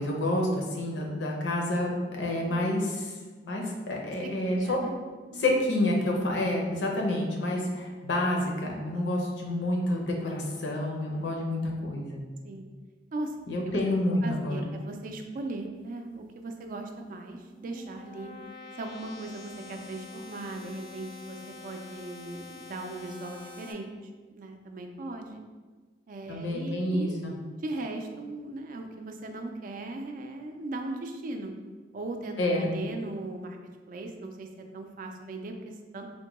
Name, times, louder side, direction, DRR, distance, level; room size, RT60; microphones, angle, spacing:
voice 1, 0.0-3.1 3.5-4.8 5.4-12.2 13.5-14.6 26.3-27.3 32.4-32.7, left 1 dB, 90° left, 0 dB, 0.6 m, -28 dB
voice 2, 4.2-5.0 5.3-5.5 9.2-9.4 11.1-11.3 12.4-12.7 13.1-13.3 13.7-13.8 14.2-18.3 18.7-23.9 24.3-25.4 26.1-27.2 27.6-31.5 31.9-33.6 33.9-36.1, right 2 dB, 50° right, 4 dB, 0.3 m, -38 dB
sound 1, 17.2-23.7, left 3 dB, 25° left, 0.4 m, -46 dB
3.5 x 2.1 x 3.0 m, 1.4 s
head